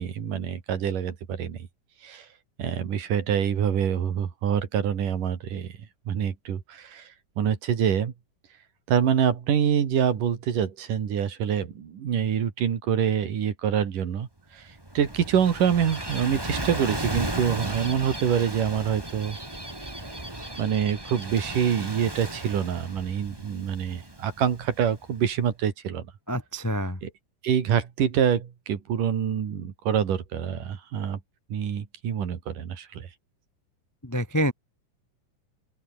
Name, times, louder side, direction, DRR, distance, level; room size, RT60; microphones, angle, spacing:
voice 1, 0.0-1.6 2.0-2.3 2.6-5.7 6.1-7.1 7.4-8.1 8.9-14.3 14.5-14.6 15.0-19.4 20.6-26.0 27.0-27.1 27.4-31.2 31.5-33.1, right 8 dB, 75° right, 4.1 m, -26 dB
Gull seagull / Waves surf, 14.6-25.2, right 1 dB, 5° right, 2.7 m, -35 dB
voice 2, 26.3-27.0 34.0-34.5, equal, 15° left, 0.6 m, -27 dB
open air
omnidirectional pair, 3.8 m